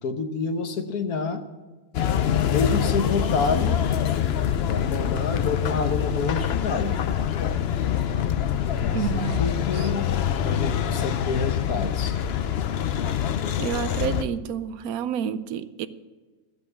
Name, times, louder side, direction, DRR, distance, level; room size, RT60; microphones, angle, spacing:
voice 1, 0.0-1.4 2.5-3.8 4.7-7.0 8.7-10.1 10.4-12.2, left 4 dB, 80° left, 7 dB, 1.5 m, -28 dB
sound 1, 1.9-14.2, left 9 dB, 60° left, 0.7 m, -25 dB
voice 2, 8.9-9.9 13.6-15.9, right 8 dB, 80° right, 13 dB, 1.1 m, -30 dB
13.5 x 7.8 x 7.3 m, 1.3 s
omnidirectional pair, 1.5 m